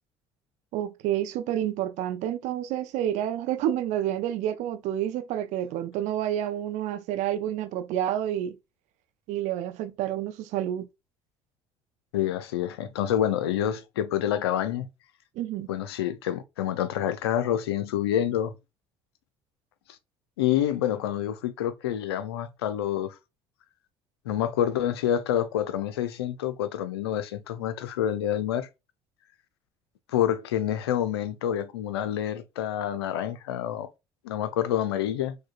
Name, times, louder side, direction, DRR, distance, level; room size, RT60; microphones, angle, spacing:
voice 1, 0.7-8.6 9.3-10.9 15.4-15.7, right 11 dB, 65° right, 0.5 m, -29 dB
voice 2, 12.1-14.9 15.7-18.5 20.4-23.2 24.3-28.7 30.1-33.9 34.2-35.4, left 11 dB, 90° left, 0.4 m, -27 dB
4.9 x 2.1 x 2.4 m
hypercardioid pair, 65°, 13 cm